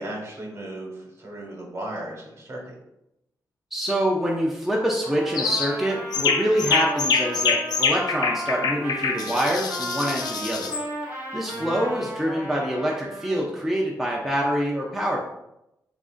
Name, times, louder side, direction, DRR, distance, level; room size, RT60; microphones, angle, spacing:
voice 1, 0.0-2.8 11.5-11.8, right 1 dB, 40° right, -1 dB, 1.3 m, -36 dB
voice 2, 3.7-10.7 11.3-15.2, equal, 5° right, -3 dB, 0.5 m, -25 dB
Trumpet, 5.0-13.4, right 1 dB, 25° right, 1.6 m, -35 dB
sound 1, 5.3-5.7 6.1-10.8, left 5 dB, 70° left, 0.5 m, -25 dB
7.4 x 2.5 x 2.5 m, 0.86 s
wide cardioid pair, 135°, 7 cm